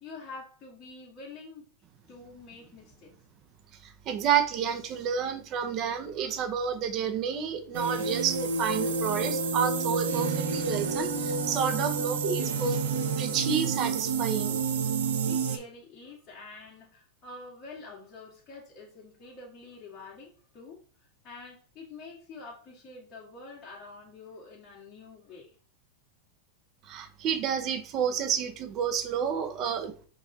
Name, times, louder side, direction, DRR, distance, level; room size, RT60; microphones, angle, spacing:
voice 1, 0.0-1.7 2.1-3.1 15.3-20.8 21.2-25.5, left 3 dB, 30° left, 1.5 m, -46 dB
voice 2, 3.8-12.8 13.2-14.6 26.9-29.9, right 7 dB, 40° right, 0.7 m, -30 dB
sound 1, 7.7-15.6, right 5 dB, 80° right, 0.7 m, -29 dB
5.1 x 2.6 x 4.1 m
hypercardioid pair, 120°, 0 cm